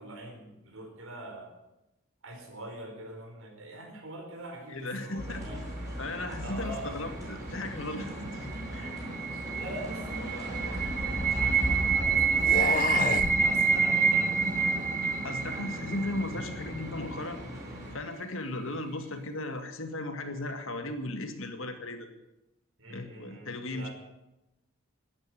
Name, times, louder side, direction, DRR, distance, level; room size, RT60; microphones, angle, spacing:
voice 1, 0.0-1.5 2.2-5.6 6.4-7.0 9.3-14.8 22.8-23.9, right 1 dB, 70° right, 3 dB, 4.2 m, -44 dB
voice 2, 4.7-5.4 6.0-8.9 15.2-17.4 17.9-22.1 22.9-23.9, left 2 dB, 70° left, 6 dB, 1.9 m, -36 dB
sound 1, 5.2-18.0, equal, 15° right, 5.1 m, -37 dB
sound 2, 8.1-17.1, right 5 dB, 40° right, 1.0 m, -28 dB
sound 3, 10.1-11.6 12.3-13.4, left 5 dB, 40° left, 0.4 m, -32 dB
12.5 x 10.5 x 9.9 m, 0.97 s
head